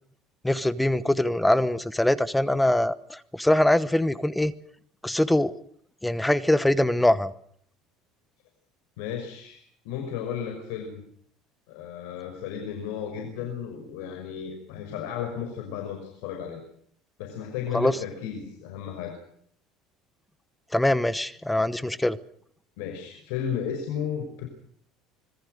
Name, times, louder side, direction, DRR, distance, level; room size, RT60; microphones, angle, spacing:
voice 1, 0.4-4.5 5.0-5.5 6.0-7.3 17.7-18.0 20.7-22.2, left 1 dB, 5° left, 15 dB, 1.0 m, -23 dB
voice 2, 9.0-11.0 11.7-16.6 17.2-19.2 22.8-24.5, left 8 dB, 85° left, 4 dB, 5.7 m, -34 dB
26.0 x 21.5 x 6.6 m, 0.64 s
cardioid pair, 160°, 0 cm